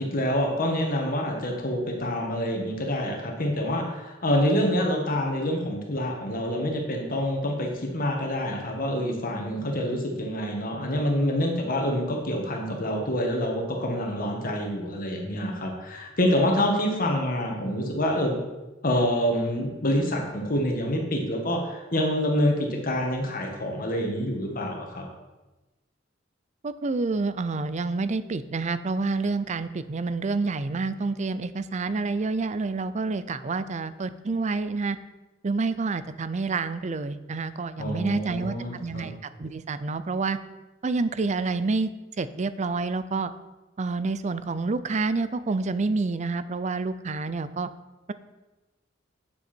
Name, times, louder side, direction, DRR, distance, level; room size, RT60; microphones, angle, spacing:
voice 1, 0.0-18.4 18.8-25.0 37.8-39.1, equal, 50° left, 1 dB, 1.7 m, -27 dB
voice 2, 26.6-35.0 35.4-40.4 40.8-41.9 42.2-43.3 43.8-47.7, right 3 dB, 40° right, 13 dB, 0.5 m, -28 dB
9.4 x 7.7 x 4.5 m, 1.1 s
head